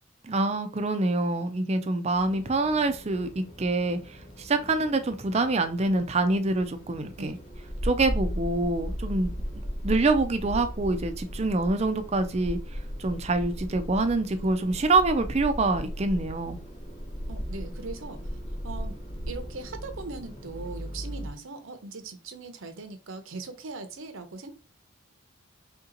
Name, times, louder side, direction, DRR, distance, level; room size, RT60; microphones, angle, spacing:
voice 1, 0.2-7.4 7.8-9.3 9.8-12.6 13.0-16.6, right 2 dB, 30° right, 0.5 m, -26 dB
sound 1, 2.1-21.3, equal, 35° left, 0.9 m, -37 dB
voice 2, 17.3-18.2 18.6-18.9 19.3-24.5, right 3 dB, 70° right, 0.7 m, -40 dB
3.6 x 2.8 x 3.8 m
head